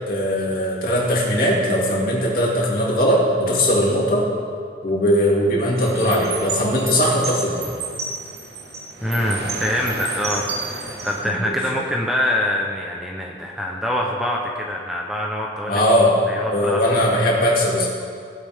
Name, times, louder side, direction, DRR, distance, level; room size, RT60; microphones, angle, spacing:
voice 1, 0.1-4.3 4.8-7.7 11.2-11.8 15.6-16.2 16.5-17.9, equal, 50° left, -4 dB, 2.6 m, -19 dB
sound 1, 5.8-11.2, right 4 dB, 60° right, 1.2 m, -30 dB
voice 2, 9.0-15.8 16.3-17.0, left 1 dB, ahead, -1 dB, 0.8 m, -25 dB
19.0 x 7.9 x 3.6 m, 2.2 s
head